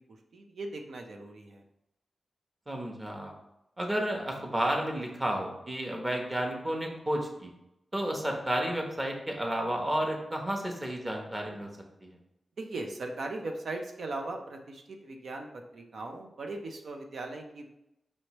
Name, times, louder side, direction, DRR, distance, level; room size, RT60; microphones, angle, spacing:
voice 1, 0.1-1.6 12.6-17.7, right 2 dB, 70° right, 3 dB, 0.6 m, -39 dB
voice 2, 2.7-3.3 3.8-7.5 7.9-11.7 12.0-12.2, right 1 dB, 20° right, 1 dB, 0.9 m, -31 dB
5.4 x 3.1 x 3.0 m, 0.86 s
wide cardioid pair, 100°, 0 cm